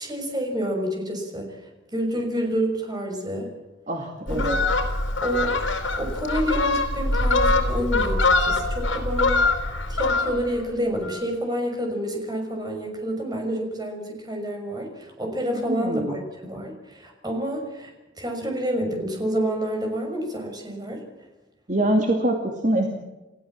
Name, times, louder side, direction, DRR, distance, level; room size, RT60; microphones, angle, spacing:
voice 1, 0.0-3.5 4.3-4.5 5.2-9.5 9.9-21.0, equal, 20° right, 2 dB, 6.3 m, -28 dB
voice 2, 3.9-4.6 15.7-16.2 21.7-22.9, right 1 dB, 40° right, 2 dB, 2.5 m, -24 dB
Fowl, 4.3-10.6 11.0-11.2, left 2 dB, 85° left, 4.6 m, -23 dB
29.5 x 15.5 x 7.5 m, 1.1 s
head